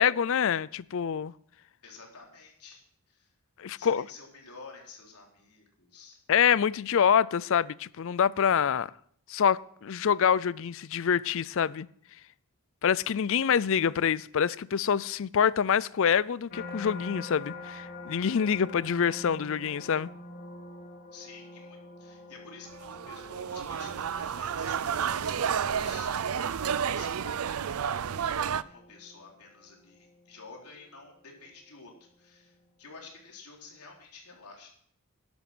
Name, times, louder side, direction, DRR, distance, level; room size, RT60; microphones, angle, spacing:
voice 1, 0.0-1.3 3.6-4.1 6.3-8.9 9.3-11.9 12.8-20.1, left 7 dB, 60° left, 0.4 m, -26 dB
voice 2, 1.8-3.3 3.8-6.2 21.1-26.1 26.9-31.9 32.2-34.7, left 4 dB, 85° left, 4.1 m, -50 dB
sound 1, 16.5-31.7 32.2-32.6, left 2 dB, 45° left, 1.8 m, -47 dB
sound 2, 22.7-28.6, right 7 dB, 75° right, 0.5 m, -31 dB
12.0 x 11.5 x 6.1 m
head